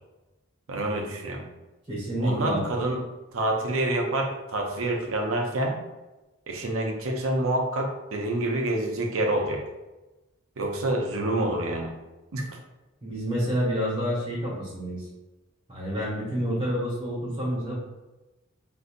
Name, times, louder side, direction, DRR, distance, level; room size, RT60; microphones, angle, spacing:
voice 1, 0.7-1.4 2.2-3.0 3.3-5.7 6.5-9.6 10.6-11.9 12.3-12.6, right 1 dB, 75° right, 2 dB, 0.6 m, -27 dB
voice 2, 1.9-2.6 13.0-15.1 15.7-17.7, equal, 25° right, -7 dB, 1.5 m, -28 dB
3.9 x 2.6 x 2.5 m, 1.1 s
head